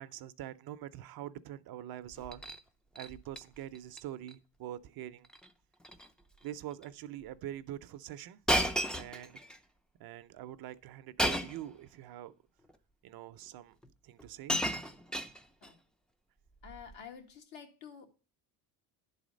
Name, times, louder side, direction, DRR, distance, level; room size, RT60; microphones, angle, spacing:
voice 1, 0.0-2.4 2.9-5.3 6.4-8.4 9.0-9.4 10.0-12.3 13.0-13.8 14.0-14.6, right 12 dB, 55° right, 0.6 m, -44 dB
Shatter, 2.1-2.6 2.9-3.4 3.7-4.0 4.3-4.4 5.2-5.5 5.8-6.1 6.8-6.9 8.5-9.6 11.2-11.7 12.7-12.8 13.8-13.9 14.2-15.7 16.6-16.9, equal, ahead, 0.3 m, -33 dB
voice 2, 16.6-18.1, left 7 dB, 80° left, 1.7 m, -49 dB
10.5 x 4.1 x 5.1 m
cardioid pair, 105°, 44 cm